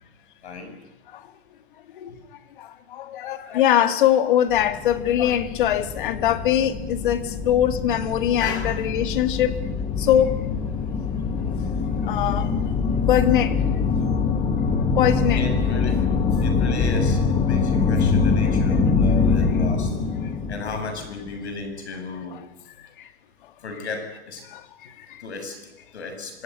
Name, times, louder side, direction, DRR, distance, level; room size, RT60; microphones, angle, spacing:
voice 1, 0.4-0.7 2.1-2.2 8.4-8.8 10.6-11.6 15.3-16.0 16.4-19.9 20.5-22.4 23.6-24.4 25.2-26.4, left 3 dB, 80° left, 7.8 m, -35 dB
voice 2, 2.6-9.6 10.0-10.4 12.0-12.5 13.1-13.6 15.0-15.5 22.3-22.4 23.0-23.1 24.5-25.2, left 11 dB, 50° left, 2.0 m, -22 dB
sound 1, 4.5-21.5, left 5 dB, 15° left, 2.1 m, -24 dB
25.5 x 17.0 x 9.7 m
hypercardioid pair, 155°, 33 cm